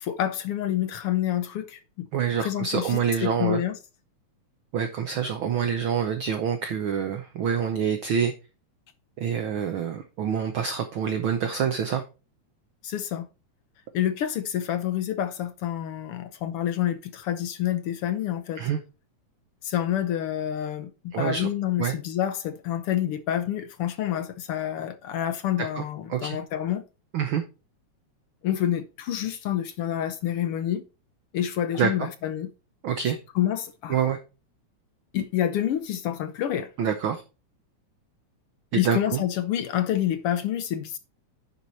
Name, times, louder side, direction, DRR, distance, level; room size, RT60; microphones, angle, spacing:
voice 1, 0.0-2.1 2.4-3.8 12.8-13.3 13.9-18.6 19.6-26.8 28.4-30.8 31.3-32.5 33.3-34.0 35.1-36.7 38.8-41.0, left 11 dB, 75° left, 1.3 m, -28 dB
voice 2, 2.1-3.6 4.7-8.3 9.2-12.0 18.6-18.8 21.1-21.5 21.8-21.9 25.7-25.8 26.1-26.4 27.1-27.4 31.7-32.1 32.8-33.2 33.9-34.2 36.8-37.2 38.7-39.2, right 7 dB, 70° right, 1.2 m, -26 dB
10.0 x 4.6 x 4.1 m
omnidirectional pair, 3.3 m